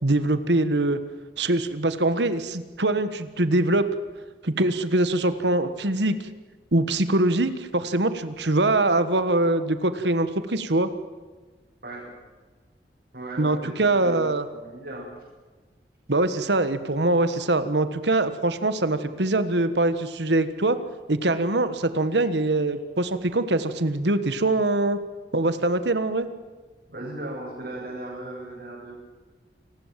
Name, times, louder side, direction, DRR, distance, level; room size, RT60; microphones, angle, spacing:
voice 1, 0.0-1.0 1.4-3.9 4.4-6.1 6.7-10.9 13.4-14.4 16.1-20.8 21.1-25.0 25.3-26.3, right 2 dB, 80° right, 11 dB, 1.5 m, -23 dB
voice 2, 13.1-14.2 14.5-15.1 26.9-28.9, right 1 dB, 60° right, -6 dB, 7.6 m, -36 dB
28.5 x 19.5 x 7.6 m, 1.4 s
head